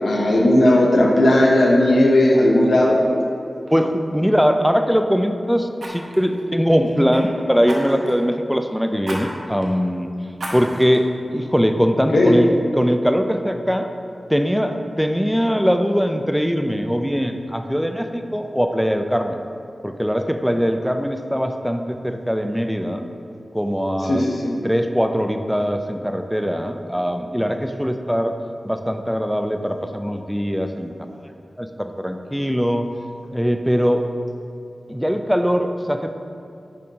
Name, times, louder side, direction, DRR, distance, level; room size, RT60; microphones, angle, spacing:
voice 1, 0.0-3.0 12.1-12.3 24.1-24.5, left 1 dB, 85° left, -2 dB, 0.8 m, -15 dB
Fire, 3.1-3.3 3.7-3.9 5.8-7.2 7.7-8.2 9.0-9.2 9.6-9.7 10.4-11.0 11.5-11.6, right 1 dB, 75° right, 1.0 m, -33 dB
voice 2, 3.7-10.1 10.5-13.9 14.3-19.4 19.8-23.1 23.5-24.3 24.6-28.3 28.6-31.3 31.6-32.9 33.3-34.0 34.9-36.1, equal, ahead, 6 dB, 0.4 m, -21 dB
6.4 x 5.3 x 2.8 m, 2.5 s
wide cardioid pair, 55°, 0 cm